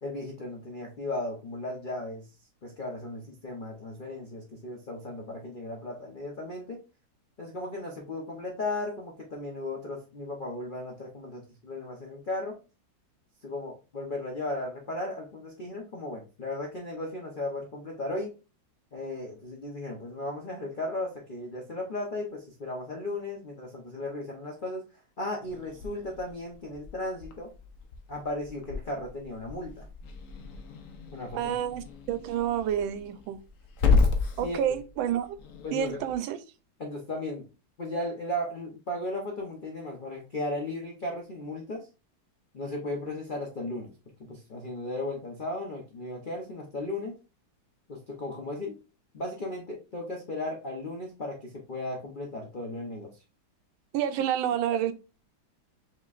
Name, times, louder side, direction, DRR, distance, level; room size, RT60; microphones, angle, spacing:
voice 1, 0.0-2.3 2.6-6.8 7.4-12.6 13.4-18.3 18.9-24.8 25.2-27.5 28.1-29.9 31.1-31.6 34.4-34.6 35.6-36.0 36.8-37.5 37.8-41.9 42.5-43.9 44.3-47.1 47.9-48.8 49.1-53.1, left 1 dB, 90° left, 0 dB, 0.4 m, -36 dB
Growling / Hiss, 25.4-36.1, left 4 dB, 60° left, 0.8 m, -32 dB
voice 2, 31.3-33.4 34.4-35.3 35.7-36.4 53.9-54.9, right 10 dB, 90° right, 11 dB, 1.4 m, -29 dB
5.6 x 3.0 x 2.4 m, 0.31 s
omnidirectional pair, 2.1 m